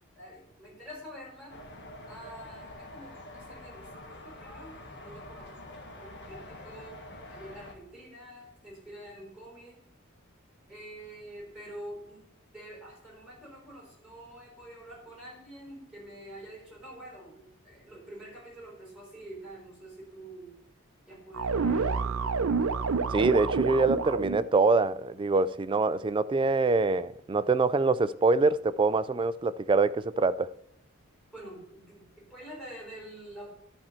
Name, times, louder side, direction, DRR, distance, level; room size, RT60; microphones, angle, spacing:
voice 1, 0.1-1.6 2.1-5.6 6.0-7.0 7.3-9.8 10.7-12.2 12.5-20.6 21.1-22.9 31.3-33.5, right 1 dB, 5° right, 4.7 m, -47 dB
sound 1, 1.5-7.8, left 1 dB, 55° left, 1.6 m, -46 dB
sound 2, 21.3-24.5, right 4 dB, 75° right, 0.6 m, -28 dB
voice 2, 23.1-30.5, right 3 dB, 25° right, 0.3 m, -25 dB
11.0 x 4.4 x 7.5 m
head